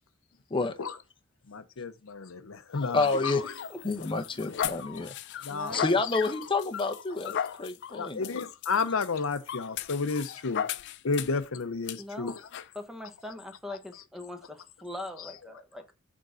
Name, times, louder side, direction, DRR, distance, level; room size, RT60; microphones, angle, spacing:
voice 1, 1.5-3.6 4.0-4.1 4.9-5.1 5.4-6.3 7.1-7.6 7.9-10.7 11.0-12.5 13.7-13.8 15.2-15.6, left 4 dB, 85° left, 0.7 m, -33 dB
sound 1, 2.7-11.4 11.9-12.0 12.5-12.7, left 9 dB, 60° left, 0.4 m, -37 dB
voice 2, 2.9-3.4 3.8-7.3 7.6-8.2, left 3 dB, 25° left, 0.7 m, -29 dB
voice 3, 5.5-6.0 12.0-12.4 12.7-15.9, left 1 dB, ahead, 1.0 m, -41 dB
6.6 x 3.7 x 6.2 m
head